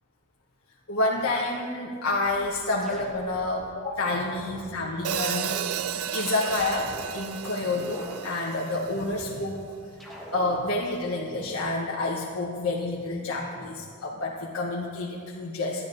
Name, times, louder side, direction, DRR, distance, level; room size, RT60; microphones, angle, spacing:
voice 1, 0.9-5.8 6.1-9.7 10.3-15.9, left 2 dB, 90° left, -4 dB, 1.1 m, -29 dB
sound 1, 2.2-3.5 4.0-4.7 5.2-7.1 7.6-9.5 10.0-10.7, equal, ahead, 1.3 m, -44 dB
Hi-hat, 5.0-9.2, right 9 dB, 80° right, 0.4 m, -33 dB
14.0 x 10.0 x 2.6 m, 2.2 s
head